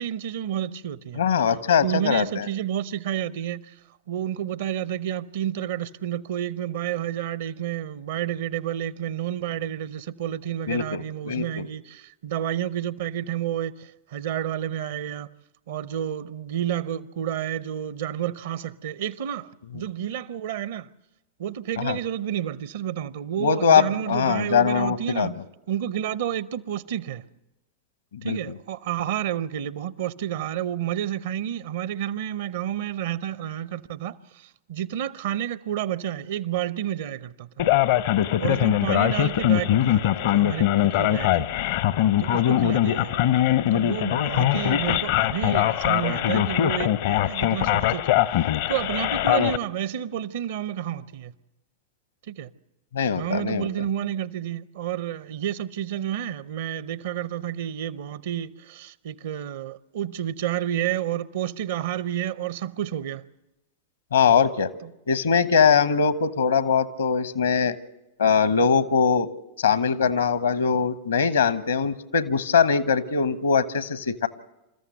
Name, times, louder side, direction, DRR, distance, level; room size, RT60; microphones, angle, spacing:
voice 1, 0.0-1.2 1.8-3.7 4.1-15.3 15.7-20.9 21.4-25.4 25.7-27.2 28.2-37.5 38.4-41.5 42.2-48.2 48.7-51.3 52.3-52.5 53.1-63.2, right 10 dB, 55° right, 0.7 m, -30 dB
voice 2, 1.1-2.5 10.7-11.7 21.8-22.0 23.4-25.3 28.1-28.4 52.9-53.7 64.1-64.7 65.1-67.8 68.2-69.3 69.6-74.3, left 6 dB, 70° left, 1.0 m, -22 dB
Male speech man speaking, 37.6-49.6, left 12 dB, 55° left, 0.7 m, -22 dB
27.0 x 14.5 x 8.0 m
figure-of-eight pair, 90°, 0 cm